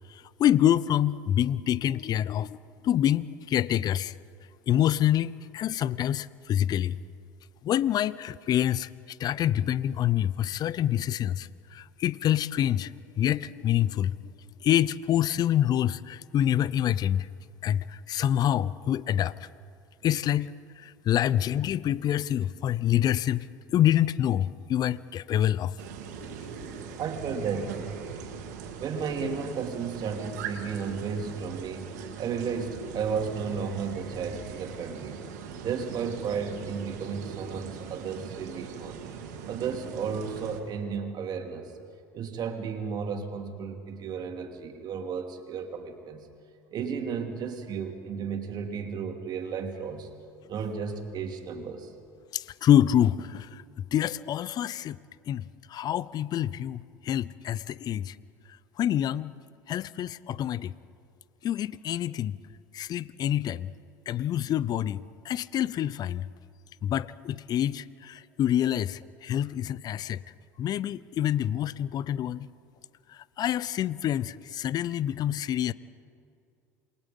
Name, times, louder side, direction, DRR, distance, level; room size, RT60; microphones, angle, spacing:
voice 1, 0.1-2.6 2.8-4.1 4.7-7.0 7.6-14.2 14.6-17.3 17.6-19.4 20.0-25.7 26.4-26.8 52.3-53.6 53.9-55.0 55.3-58.2 58.8-59.3 59.7-60.7 61.4-62.4 62.7-63.7 64.1-66.3 66.8-70.2 70.6-72.5 73.1-75.7, left 11 dB, 45° left, 19 dB, 0.7 m, -27 dB
sound 1, 25.8-40.6, right 7 dB, 75° right, 2.8 m, -41 dB
voice 2, 27.0-27.9 28.8-31.9 32.2-35.2 35.6-39.0 39.5-41.7 42.1-46.3 46.7-50.1 50.5-51.9, right 6 dB, 50° right, 4 dB, 3.1 m, -33 dB
28.0 x 22.5 x 5.5 m, 2.5 s
hypercardioid pair, 75°, 9 cm